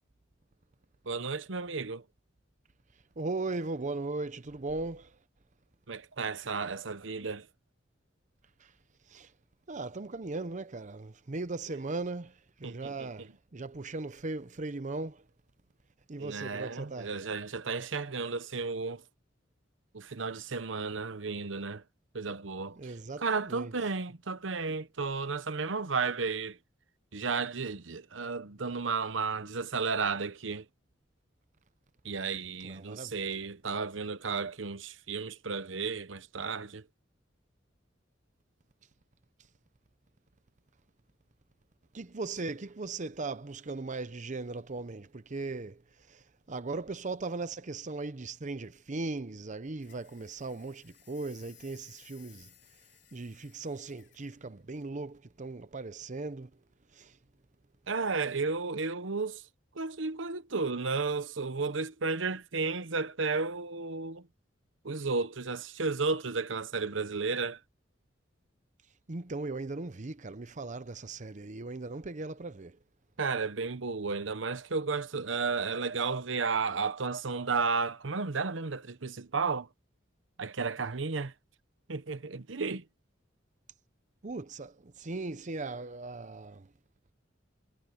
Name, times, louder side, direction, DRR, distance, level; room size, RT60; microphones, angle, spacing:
voice 1, 1.1-2.0 5.9-7.5 12.6-13.3 16.2-19.0 19.9-21.8 22.1-26.6 27.1-30.6 32.0-36.8 57.9-59.4 59.7-64.2 64.8-67.6 73.2-79.7 80.4-81.3 81.9-82.8, right 4 dB, 80° right, 1.0 m, -33 dB
voice 2, 3.2-5.2 9.1-9.3 9.7-15.2 16.1-17.1 22.8-23.7 32.6-33.1 41.9-45.8 46.1-52.5 53.1-56.5 56.9-57.1 69.1-72.8 84.2-86.7, right 3 dB, 40° right, 0.8 m, -38 dB
sound 1, 49.8-54.4, left 12 dB, 65° left, 4.0 m, -60 dB
head